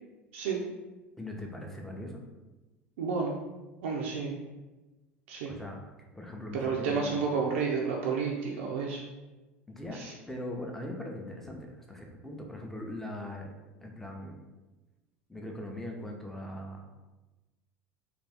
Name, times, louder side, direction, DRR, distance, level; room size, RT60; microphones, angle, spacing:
voice 1, 0.3-0.6 3.0-3.4 3.8-4.4 5.3-5.6 6.5-9.0 9.9-10.1, right 5 dB, 70° right, -2 dB, 0.4 m, -31 dB
voice 2, 1.2-2.2 5.4-5.8 6.1-7.2 9.7-10.0 10.3-13.5 13.8-14.4 15.3-16.9, left 1 dB, 5° left, 0 dB, 0.6 m, -40 dB
2.5 x 2.4 x 3.3 m, 1.1 s
hypercardioid pair, 75°, 7 cm